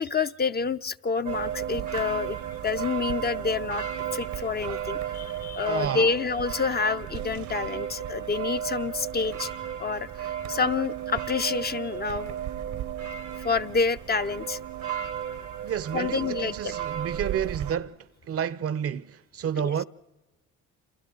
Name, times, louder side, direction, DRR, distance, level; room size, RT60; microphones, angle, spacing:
voice 1, 0.0-2.4 2.6-3.8 4.1-9.5 9.8-12.4 13.4-14.6 15.9-16.7 19.6-19.7, left 5 dB, 35° left, 0.6 m, -28 dB
sound 1, 1.3-17.8, right 10 dB, 75° right, 1.0 m, -34 dB
voice 2, 5.7-6.1 15.6-18.0 18.3-19.8, right 9 dB, 50° right, 0.7 m, -30 dB
28.5 x 28.5 x 3.8 m
cardioid pair, 90°, 30 cm